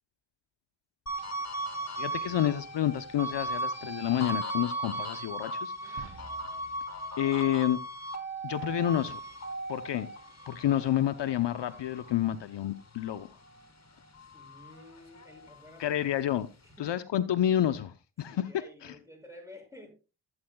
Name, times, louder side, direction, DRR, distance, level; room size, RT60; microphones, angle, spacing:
sound 1, 1.1-13.7 14.1-15.8, right 1 dB, 35° left, 1.9 m, -37 dB
voice 1, 2.0-6.2 7.2-7.8 8.4-9.2 9.7-10.1 10.5-13.3 15.8-16.5 16.8-18.5 18.8-18.9, left 11 dB, 60° left, 0.7 m, -29 dB
sound 2, 6.0-8.5, right 3 dB, 50° right, 2.9 m, -51 dB
voice 2, 14.3-16.0 16.6-16.9 18.2-19.9, left 1 dB, 5° right, 6.4 m, -51 dB
15.5 x 8.7 x 2.2 m
supercardioid pair, 45°, 48 cm